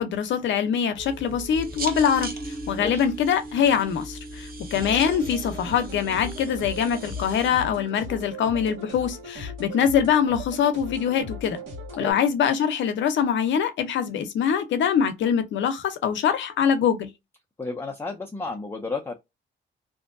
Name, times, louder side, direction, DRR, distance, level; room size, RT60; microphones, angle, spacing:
voice 1, 0.0-2.3 2.7-11.6 12.0-17.1, left 8 dB, 70° left, 0.6 m, -23 dB
sound 1, 1.0-7.5, right 1 dB, 50° right, 0.9 m, -37 dB
sound 2, 4.7-12.1, equal, 75° right, 1.3 m, -38 dB
voice 2, 17.6-19.1, left 3 dB, 10° left, 0.5 m, -32 dB
2.6 x 2.2 x 2.5 m
cardioid pair, 90°, 20 cm